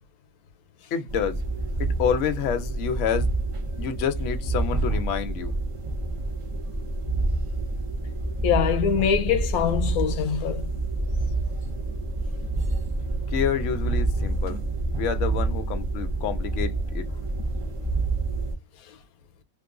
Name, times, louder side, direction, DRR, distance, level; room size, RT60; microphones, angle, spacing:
voice 1, 0.9-1.4 1.8-3.3 3.8-5.5 13.3-14.6 15.0-17.1, left 8 dB, 65° left, 0.9 m, -28 dB
sound 1, 1.1-18.5, right 2 dB, 55° right, 0.3 m, -28 dB
voice 2, 8.4-10.7 18.9-19.0, left 8 dB, 90° left, 1.1 m, -24 dB
3.0 x 2.2 x 3.6 m
omnidirectional pair, 1.5 m